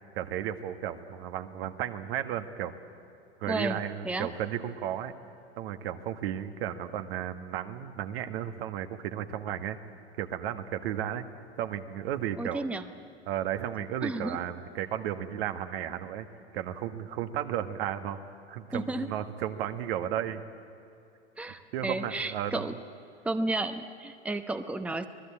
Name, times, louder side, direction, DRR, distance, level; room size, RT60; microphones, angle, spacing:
voice 1, 0.1-2.7 3.4-5.1 5.6-9.8 10.2-11.2 11.6-12.6 13.3-16.3 16.5-20.4 21.7-22.8, right 10 dB, 60° right, 8 dB, 1.6 m, -34 dB
voice 2, 3.4-3.8 4.0-4.3 12.4-12.8 14.0-14.4 18.7-19.1 21.4-22.7 23.2-25.1, right 2 dB, 5° right, 9 dB, 1.0 m, -32 dB
25.5 x 19.5 x 8.7 m, 2.8 s
hypercardioid pair, 90°, 33 cm